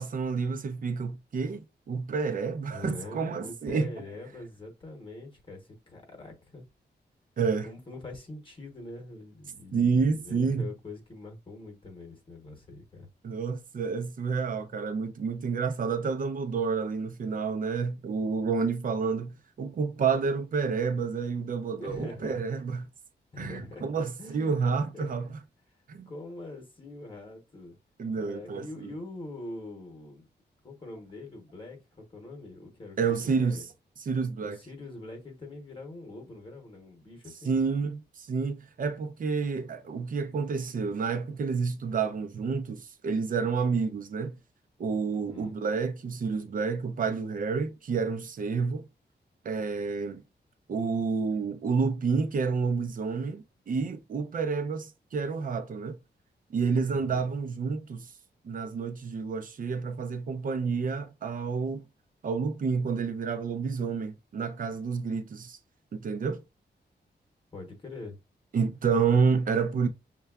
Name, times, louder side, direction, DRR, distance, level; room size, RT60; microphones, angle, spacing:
voice 1, 0.0-3.9 7.4-7.7 9.7-10.7 13.2-22.9 23.4-25.3 25.9-26.1 28.0-28.9 33.0-33.6 34.1-34.6 37.4-44.4 44.8-48.9 49.4-50.2 50.7-56.0 56.5-58.1 58.4-61.8 62.2-65.6 65.9-66.4 68.5-69.9, right 5 dB, 50° right, 0.5 m, -29 dB
voice 2, 2.7-6.6 7.6-13.1 21.8-22.4 23.3-24.6 24.9-25.3 25.7-25.8 26.1-27.8 28.2-30.3 30.6-33.6 34.4-37.6 45.1-45.6 56.9-57.3 67.5-68.2, left 2 dB, 30° left, 0.9 m, -43 dB
6.5 x 2.2 x 2.3 m
wide cardioid pair, 175°, 18 cm